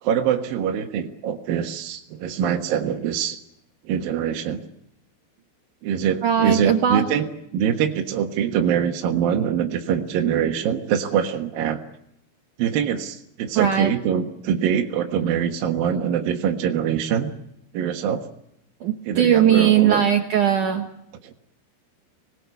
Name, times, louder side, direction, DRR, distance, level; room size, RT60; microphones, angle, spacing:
voice 1, 0.0-3.4 3.8-4.6 5.8-11.8 12.6-17.3 17.7-18.2 19.0-20.0 21.2-21.3, right 8 dB, 60° right, 2 dB, 2.6 m, -24 dB
voice 2, 6.2-7.1 13.6-13.9 18.8-20.9, right 9 dB, 85° right, 4 dB, 1.7 m, -19 dB
27.0 x 19.5 x 8.2 m, 0.79 s
omnidirectional pair, 5.6 m